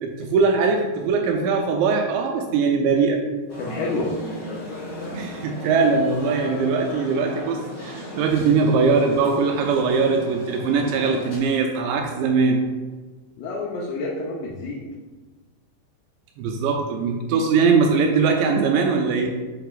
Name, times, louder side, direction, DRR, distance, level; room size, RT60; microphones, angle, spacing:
voice 1, 0.0-3.2 5.1-12.6 16.4-19.3, right 4 dB, 85° right, 2 dB, 2.7 m, -21 dB
sound 1, 3.5-11.4, left 1 dB, 50° left, 1.3 m, -36 dB
voice 2, 3.6-4.1 13.4-14.8, left 3 dB, 80° left, -3 dB, 2.8 m, -28 dB
7.7 x 5.5 x 2.4 m, 1.3 s
omnidirectional pair, 5.4 m